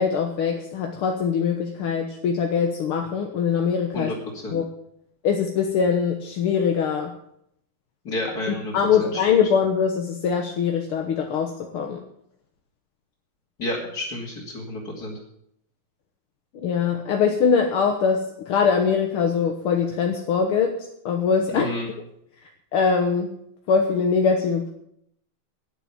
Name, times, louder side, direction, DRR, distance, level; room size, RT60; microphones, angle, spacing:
voice 1, 0.0-4.1 4.5-4.6 5.2-7.1 8.7-12.0 16.6-20.7 21.1-21.7 22.7-23.3 23.7-24.7, left 6 dB, 75° left, 3 dB, 2.1 m, -22 dB
voice 2, 3.9-4.6 8.0-8.7 9.0-9.3 13.6-15.2 21.5-21.9, left 1 dB, 45° left, -6 dB, 3.3 m, -31 dB
11.5 x 10.0 x 8.4 m, 0.75 s
omnidirectional pair, 2.4 m